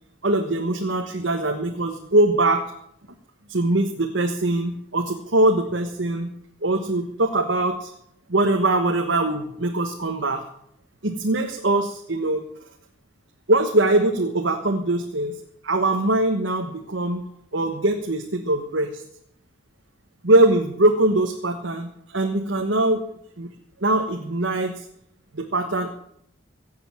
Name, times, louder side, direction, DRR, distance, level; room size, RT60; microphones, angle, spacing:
voice 1, 0.2-2.6 3.5-6.3 6.6-7.9 8.3-10.4 11.0-12.4 13.5-15.3 15.6-17.2 17.5-19.0 20.2-23.0 23.4-23.5 23.8-24.8 25.3-25.9, right 2 dB, 70° right, 4 dB, 1.4 m, -22 dB
17.0 x 7.9 x 8.9 m, 0.74 s
head